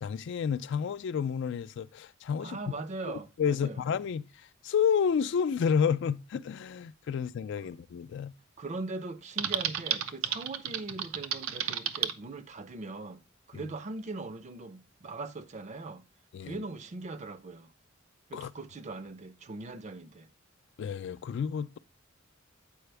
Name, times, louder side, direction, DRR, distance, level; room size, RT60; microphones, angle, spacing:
voice 1, 0.0-2.6 3.1-8.3 13.5-13.7 16.3-16.6 18.3-18.5 20.8-21.8, left 7 dB, 60° left, 0.3 m, -30 dB
voice 2, 2.4-3.8 7.6-7.7 8.6-13.2 13.5-16.0 16.4-17.7 18.3-20.3, right 3 dB, 35° right, 0.5 m, -40 dB
Typing, 9.4-12.1, right 9 dB, 85° right, 0.5 m, -32 dB
7.8 x 4.8 x 3.3 m
head